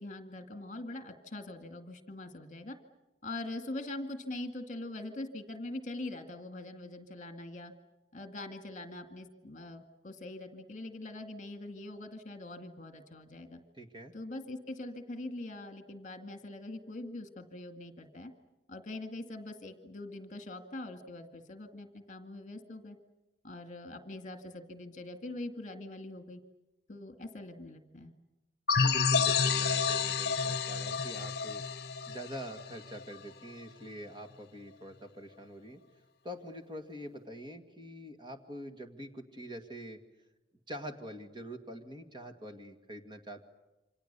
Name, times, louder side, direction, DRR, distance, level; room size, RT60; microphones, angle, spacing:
voice 1, 0.0-2.8 3.2-7.7 8.1-13.6 14.1-18.3 18.7-23.0 23.4-26.4 26.9-28.1, left 2 dB, 40° left, 7 dB, 2.1 m, -43 dB
voice 2, 13.8-14.1 28.8-31.6 32.1-35.8 36.2-40.0 40.7-43.4, equal, 25° right, 5 dB, 2.0 m, -45 dB
sound 1, 28.7-33.1, left 5 dB, 55° left, 1.0 m, -29 dB
28.5 x 26.0 x 6.9 m, 1.0 s
head